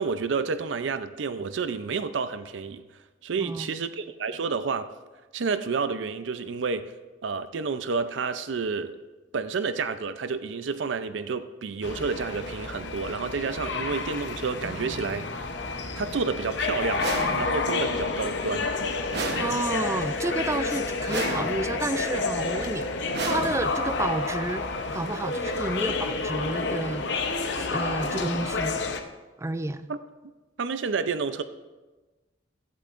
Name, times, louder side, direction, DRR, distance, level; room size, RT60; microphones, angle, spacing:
voice 1, 0.0-2.8 3.2-4.9 5.3-6.9 7.2-9.0 9.3-15.5 16.0-17.1 17.4-18.7 29.9-30.0 30.6-31.4, right 5 dB, 80° right, 12 dB, 0.5 m, -30 dB
sound 1, 11.8-29.0, left 3 dB, 65° left, 0.8 m, -30 dB
Strum, 14.6-21.5, right 1 dB, 85° left, 2.8 m, -49 dB
sound 2, 17.0-17.8 19.1-20.0 21.1-21.9 23.1-24.0, right 3 dB, 60° right, 1.1 m, -33 dB
voice 2, 19.4-27.0 27.5-28.8 29.4-29.9, right 2 dB, 15° right, 12 dB, 0.3 m, -31 dB
16.0 x 12.0 x 2.5 m, 1.2 s
head